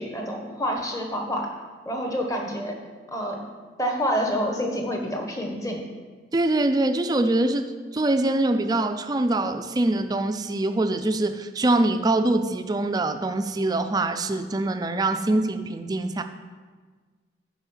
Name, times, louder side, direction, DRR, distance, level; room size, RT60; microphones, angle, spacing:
voice 1, 0.0-1.5 1.8-2.7 3.1-3.4 3.8-5.8, equal, 15° left, 2 dB, 1.0 m, -27 dB
voice 2, 6.3-16.2, right 2 dB, 20° right, 8 dB, 0.4 m, -24 dB
9.8 x 4.9 x 5.5 m, 1.4 s
head